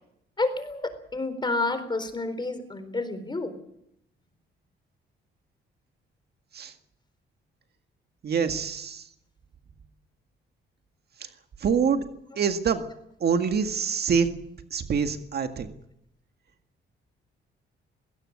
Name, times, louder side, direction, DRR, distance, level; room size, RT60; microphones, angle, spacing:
voice 1, 0.4-3.5, left 2 dB, 20° left, 10 dB, 4.1 m, -29 dB
voice 2, 8.2-9.1 11.6-12.1 12.4-12.8 13.2-14.3 14.7-15.7, right 6 dB, 55° right, 7 dB, 1.9 m, -25 dB
20.5 x 17.5 x 8.8 m, 0.76 s
cardioid pair, 90°, 20 cm